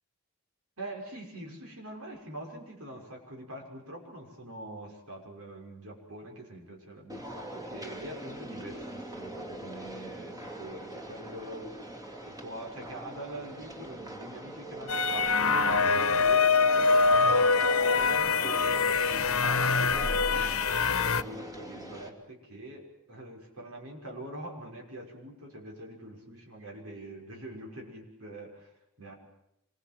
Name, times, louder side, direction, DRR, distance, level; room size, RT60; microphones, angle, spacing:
voice 1, 0.8-11.7 12.3-16.5 17.2-28.6 29.0-29.2, right 1 dB, 70° right, 0 dB, 6.2 m, -44 dB
sound 1, 7.1-22.1, right 1 dB, 15° right, 2.8 m, -42 dB
sound 2, 14.9-21.2, left 4 dB, 70° left, 1.1 m, -24 dB
26.5 x 22.5 x 7.7 m, 0.79 s
head